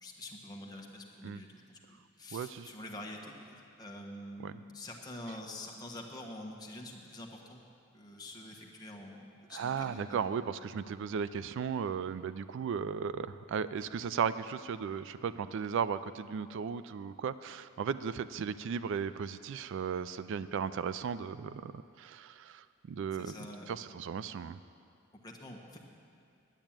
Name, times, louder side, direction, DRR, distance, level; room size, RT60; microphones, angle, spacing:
voice 1, 0.0-7.6 7.9-10.2 23.1-23.7 25.1-25.8, left 1 dB, 20° left, 0 dB, 1.4 m, -46 dB
voice 2, 2.3-2.7 4.4-4.5 9.5-23.3 23.7-24.6, right 6 dB, 65° right, 14 dB, 0.3 m, -36 dB
10.5 x 9.1 x 8.8 m, 2.4 s
head